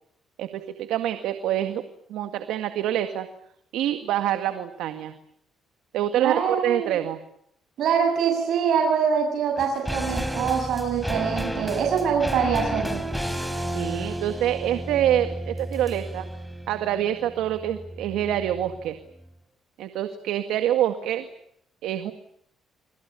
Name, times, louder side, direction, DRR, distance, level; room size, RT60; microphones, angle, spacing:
voice 1, 0.4-1.8 2.1-3.3 3.7-5.1 5.9-7.2 13.7-16.3 16.7-19.0 19.8-21.3 21.8-22.1, right 11 dB, 90° right, 8 dB, 1.9 m, -26 dB
voice 2, 6.2-7.0 7.8-13.0, right 7 dB, 75° right, 3 dB, 7.2 m, -24 dB
sound 1, 9.6-19.0 19.2-19.3, equal, ahead, 4.5 m, -32 dB
27.0 x 27.0 x 7.0 m, 0.70 s
cardioid pair, 90°, 0 cm